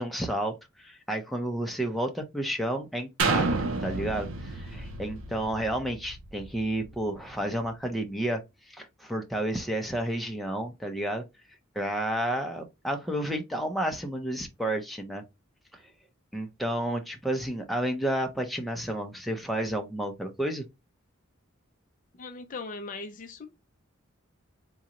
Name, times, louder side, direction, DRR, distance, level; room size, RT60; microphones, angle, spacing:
voice 1, 0.0-3.5 3.8-8.4 8.7-11.2 11.8-15.2 16.3-20.6, right 1 dB, ahead, 0.6 m, -31 dB
sound 1, 3.2-7.0 7.5-7.6, right 3 dB, 75° right, 0.7 m, -30 dB
voice 2, 22.1-23.5, left 3 dB, 40° left, 0.4 m, -39 dB
3.8 x 2.2 x 2.9 m
head